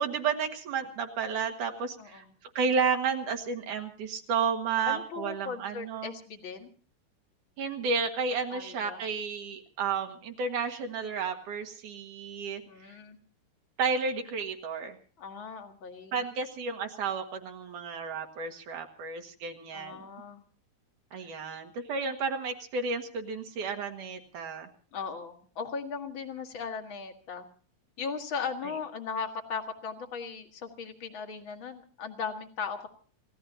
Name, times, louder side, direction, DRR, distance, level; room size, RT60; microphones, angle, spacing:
voice 1, 0.0-2.3 2.6-6.1 7.6-12.6 13.8-15.0 16.1-20.0 21.1-24.7, right 5 dB, 65° right, 4 dB, 3.0 m, -32 dB
voice 2, 4.8-6.7 8.5-9.0 12.7-13.2 15.2-16.2 19.7-20.4 21.1-21.3 24.9-27.5 28.0-32.9, left 5 dB, 40° left, 4 dB, 2.1 m, -38 dB
29.5 x 16.5 x 2.7 m, 0.40 s
omnidirectional pair, 4.0 m